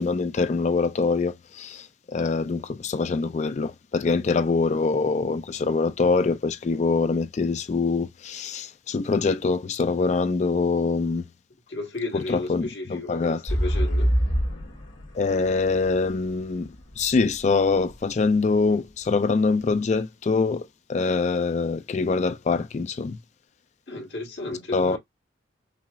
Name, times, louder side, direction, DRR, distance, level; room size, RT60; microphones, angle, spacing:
voice 1, 0.0-11.2 12.1-13.4 15.1-23.2 24.7-25.0, left 4 dB, 35° left, 0.3 m, -24 dB
voice 2, 11.7-14.1 23.9-25.0, left 2 dB, 65° left, 1.5 m, -33 dB
sound 1, 13.5-17.4 17.9-18.0, equal, 85° left, 1.7 m, -25 dB
5.5 x 2.0 x 2.4 m
head